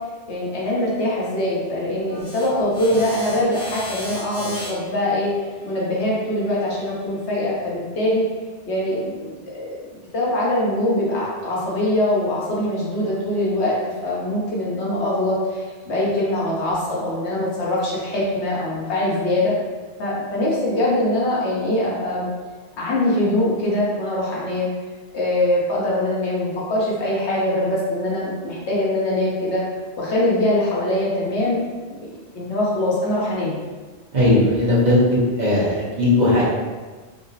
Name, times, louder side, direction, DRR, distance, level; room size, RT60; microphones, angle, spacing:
voice 1, 0.3-5.3 5.6-8.2 8.7-9.7 10.1-19.5 20.0-22.3 22.8-24.7 25.1-29.6 30.0-31.6 32.0-33.6, left 1 dB, 75° left, -5 dB, 1.2 m, -23 dB
sound 1, 2.1-7.3, left 1 dB, 40° left, 1.0 m, -37 dB
voice 2, 34.1-36.4, left 1 dB, 40° right, -7 dB, 1.1 m, -17 dB
4.9 x 2.0 x 2.7 m, 1.3 s
omnidirectional pair, 1.1 m